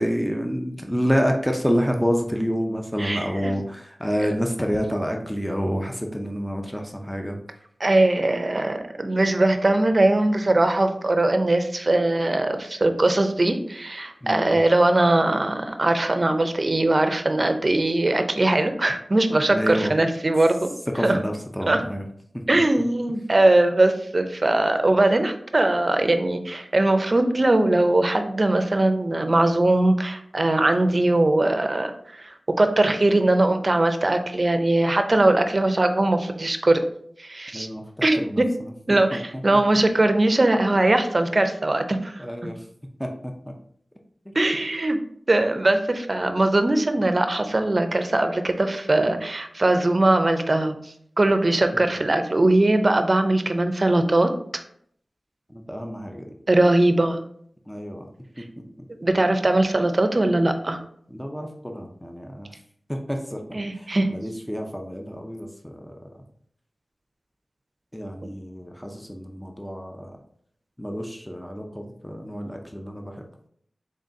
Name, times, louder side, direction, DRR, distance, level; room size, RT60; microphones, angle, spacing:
voice 1, 0.0-7.4 14.2-14.6 19.5-19.9 20.9-22.0 37.5-37.8 38.2-38.4 42.2-42.6 43.0-43.3 51.7-51.9 55.5-56.3 57.7-58.1 61.1-62.5 62.9-63.4 63.7-66.0 67.9-70.1 70.8-73.2, equal, 5° left, 2 dB, 0.6 m, -28 dB
voice 2, 3.0-3.5 4.2-4.3 7.8-20.7 21.0-21.2 21.7-21.8 22.5-36.8 37.2-37.7 38.0-38.5 38.9-42.2 44.3-45.0 45.3-50.8 51.2-54.6 56.5-57.2 59.0-60.8 63.5-64.1 68.2-68.3, right 2 dB, 50° right, 7 dB, 0.5 m, -21 dB
3.8 x 3.8 x 2.7 m, 0.64 s
wide cardioid pair, 45°, 0 cm